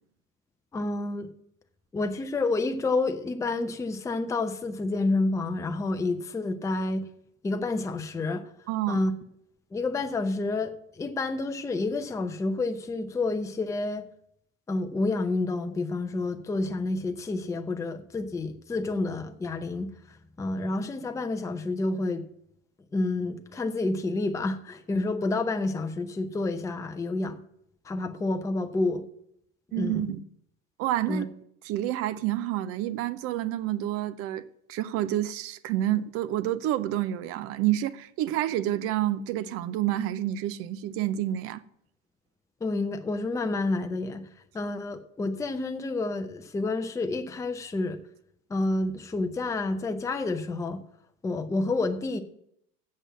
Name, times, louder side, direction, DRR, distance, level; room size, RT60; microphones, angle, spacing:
voice 1, 0.7-1.3 1.9-7.1 7.4-8.5 8.9-9.1 9.7-14.0 14.7-22.3 22.9-27.4 27.8-29.0 29.7-30.1 31.1-31.3 42.6-44.2 44.5-48.0 48.5-50.8 51.2-52.2, left 2 dB, 10° left, 0.7 m, -29 dB
voice 2, 8.7-9.0 29.7-30.2 30.8-31.3 31.6-34.4 34.7-41.6, right 13 dB, 35° right, 0.7 m, -28 dB
8.1 x 7.4 x 7.3 m
figure-of-eight pair, 80°, 39 cm